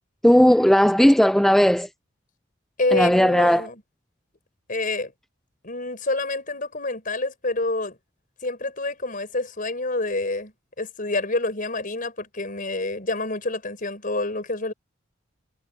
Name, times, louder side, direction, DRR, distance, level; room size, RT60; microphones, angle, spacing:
voice 1, 0.2-1.9 2.9-3.7, equal, ahead, 0.4 m, -16 dB
voice 2, 2.8-3.8 4.7-5.1 5.6-8.0 8.4-10.5 10.8-14.7, left 2 dB, 45° left, 5.6 m, -27 dB
head